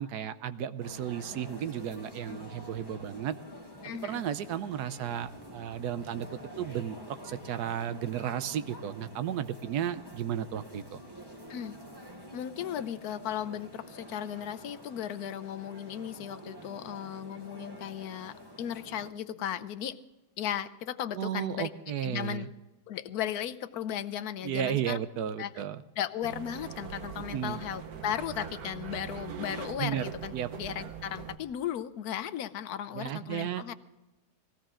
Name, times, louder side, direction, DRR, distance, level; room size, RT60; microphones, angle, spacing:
voice 1, 0.0-3.3 4.0-6.3 6.6-11.0 21.1-22.5 24.4-25.8 27.3-27.6 29.8-30.0 30.3-30.5 32.9-33.7, right 9 dB, 85° right, 12 dB, 1.2 m, -34 dB
sound 1, 0.8-19.1, equal, 15° right, 1.2 m, -48 dB
voice 2, 3.8-4.2 11.5-11.8 12.3-20.0 20.4-21.7 22.0-22.5 22.9-25.0 25.4-25.5 26.0-33.7, left 10 dB, 75° left, 12 dB, 1.2 m, -36 dB
sound 2, 26.2-31.4, right 8 dB, 70° right, 1.4 m, -42 dB
19.0 x 16.5 x 3.8 m, 1.0 s
omnidirectional pair, 1.7 m